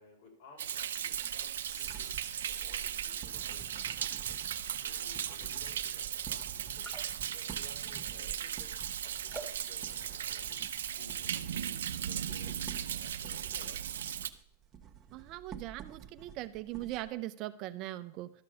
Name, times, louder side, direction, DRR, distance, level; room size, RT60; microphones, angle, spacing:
voice 1, 0.0-14.0, left 3 dB, 65° left, -1 dB, 5.2 m, -58 dB
Thunder, 0.6-14.3, right 9 dB, 90° right, 0.5 m, -37 dB
sound 1, 1.1-17.1, right 9 dB, 20° right, 1.1 m, -50 dB
sound 2, 6.8-7.3 7.7-8.2 9.2-9.7 10.2-10.7 11.1-11.3, right 2 dB, 5° left, 1.8 m, -47 dB
voice 2, 15.1-18.3, right 15 dB, 40° right, 11 dB, 0.5 m, -40 dB
12.5 x 5.3 x 6.9 m, 0.62 s
supercardioid pair, 140°, 0 cm